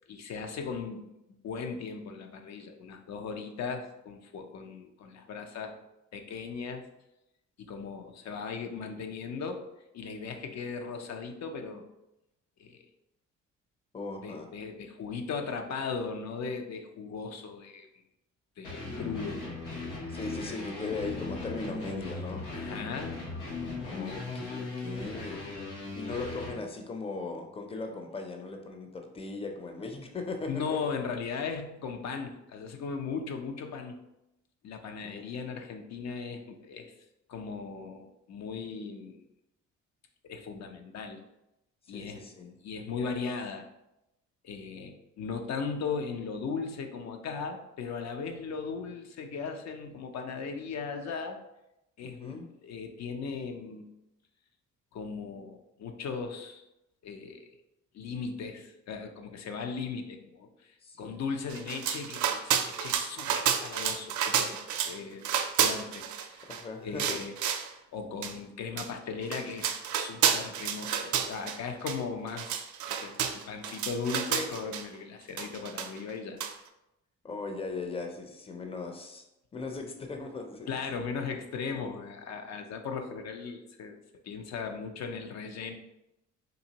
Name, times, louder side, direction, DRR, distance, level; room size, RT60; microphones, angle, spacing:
voice 1, 0.1-1.1 1.4-5.8 6.1-6.9 7.6-9.6 9.9-11.9 12.6-12.8 14.2-17.9 18.6-19.5 22.5-23.2 30.5-34.0 34.6-36.9 37.3-39.2 40.2-41.2 41.9-42.3 42.6-43.6 44.4-51.4 52.0-52.4 52.6-53.9 54.9-56.6 57.0-57.5 57.9-64.6 64.9-66.5 66.8-67.3 67.9-72.6 72.9-76.4 80.7-85.7, left 5 dB, 60° left, 5 dB, 0.6 m, -37 dB
voice 2, 13.9-14.5 20.1-22.9 23.8-25.5 25.9-30.9 35.0-35.3 41.9-42.5 52.0-52.5 60.8-61.2 66.5-67.3 77.2-79.3 79.5-80.7 81.7-81.9, left 3 dB, 20° left, 4 dB, 0.5 m, -38 dB
sound 1, 18.6-26.6, left 3 dB, 85° left, 1.0 m, -38 dB
sound 2, 61.5-65.0 65.2-66.6 67.0-67.7 68.2-68.3 68.8-68.9 69.2-71.6 71.9-72.0 72.3-74.8 75.4-76.1 76.4-76.5, right 8 dB, 75° right, 0.4 m, -30 dB
3.9 x 2.6 x 2.8 m, 0.88 s
cardioid pair, 90°, 30 cm